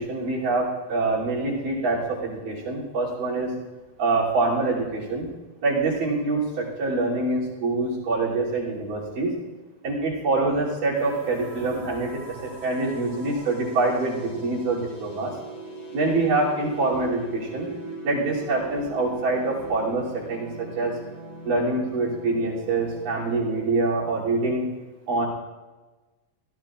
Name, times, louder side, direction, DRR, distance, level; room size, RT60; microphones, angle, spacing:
voice 1, 0.0-3.5 4.0-5.3 5.6-9.3 9.8-15.4 15.9-17.7 18.0-21.0 21.4-24.7 25.1-25.3, right 3 dB, 60° right, -4 dB, 4.6 m, -25 dB
sound 1, 10.9-23.7, right 2 dB, 75° left, 6.2 m, -40 dB
25.5 x 16.5 x 2.5 m, 1.2 s
omnidirectional pair, 4.5 m